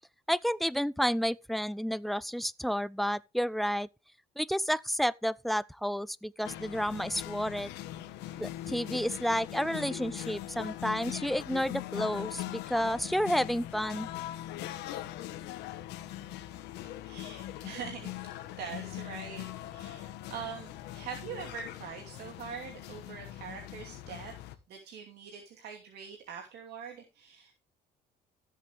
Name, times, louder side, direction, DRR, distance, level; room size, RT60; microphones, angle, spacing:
voice 1, 0.3-3.9 4.4-7.7 8.4-14.1, equal, ahead, 0.4 m, -31 dB
sound 1, 6.4-24.6, left 14 dB, 90° left, 1.3 m, -41 dB
voice 2, 17.0-18.3 18.6-24.3 24.7-27.5, right 6 dB, 75° right, 2.7 m, -43 dB
14.0 x 8.1 x 3.5 m
cardioid pair, 110°, 17 cm